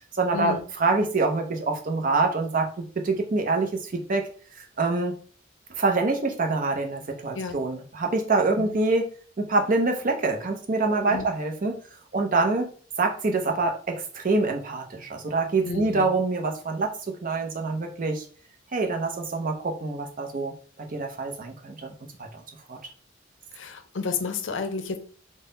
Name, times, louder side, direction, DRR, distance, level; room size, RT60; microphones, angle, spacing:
voice 1, 0.0-4.3 4.5-5.2 5.7-9.1 9.4-11.8 12.1-18.3 18.7-21.9 22.2-22.4 22.7-22.8, right 3 dB, 45° right, 4 dB, 0.6 m, -26 dB
voice 2, 11.0-11.3 15.6-16.2 23.5-25.0, left 4 dB, 75° left, 8 dB, 0.6 m, -31 dB
3.7 x 2.1 x 3.8 m, 0.43 s
head